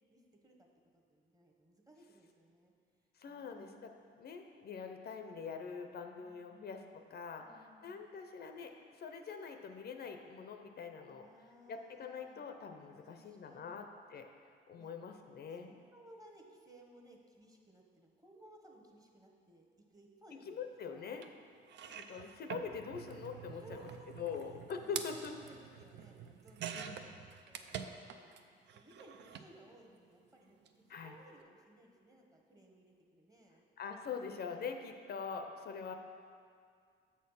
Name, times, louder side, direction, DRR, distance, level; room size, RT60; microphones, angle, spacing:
voice 1, 0.1-0.7 0.9-2.7 3.3-4.1 4.8-5.1 6.2-6.7 7.4-8.0 11.1-12.5 12.9-13.8 14.8-14.9 15.5-20.6 20.9-21.4 23.5-27.1 27.5-28.4 28.7-33.6 35.7-36.0, right 1 dB, 20° right, 1 dB, 1.1 m, -61 dB
voice 2, 3.2-6.8 7.1-7.4 7.8-11.3 11.7-14.3 14.7-15.7 20.5-21.3 21.9-23.9 24.2-25.3 26.8-27.0 30.9-31.2 33.8-35.9, left 6 dB, 55° left, 5 dB, 0.6 m, -44 dB
sound 1, 21.2-21.3 21.7-28.4 28.7-29.5 30.5-30.7 30.9-31.0, right 7 dB, 65° right, 0.5 m, -46 dB
7.2 x 4.3 x 5.6 m, 2.2 s
cardioid pair, 90°, 20 cm